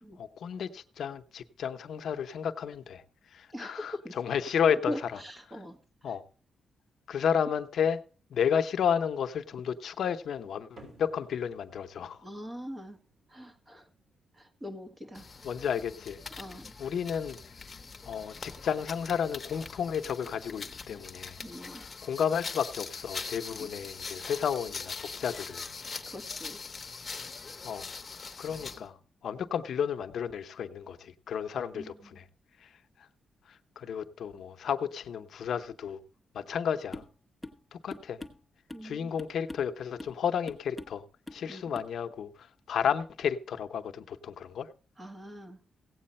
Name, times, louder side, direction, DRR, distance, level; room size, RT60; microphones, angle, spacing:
voice 1, 0.2-5.2 5.5-5.6 6.0-6.2 7.1-8.0 8.3-12.3 15.4-16.2 16.8-17.6 18.0-21.4 22.0-25.7 27.6-27.9 28.4-32.2 32.6-33.1 33.5-36.0 36.3-37.0 37.7-38.2 38.8-41.1 41.3-44.7, left 8 dB, 70° left, 0.7 m, -32 dB
voice 2, 3.5-4.2 4.9-5.8 6.1-6.2 12.2-13.0 13.3-13.9 14.3-15.3 16.4-16.7 21.4-21.8 23.6-23.7 26.1-26.6 31.7-32.2 38.7-39.1 41.5-41.6 45.0-45.6, equal, 20° right, 1.5 m, -42 dB
sound 1, 10.8-17.5, right 2 dB, 55° right, 3.8 m, -61 dB
transition walk, 15.1-28.9, left 4 dB, 30° left, 1.0 m, -42 dB
sound 2, 36.9-37.2 37.4-37.6 37.9-38.9 39.2-39.7 40.0-40.2 40.5-41.0 41.3-41.5 41.7-41.9, left 2 dB, 5° left, 1.1 m, -44 dB
16.0 x 8.5 x 4.2 m
wide cardioid pair, 150°, 0 cm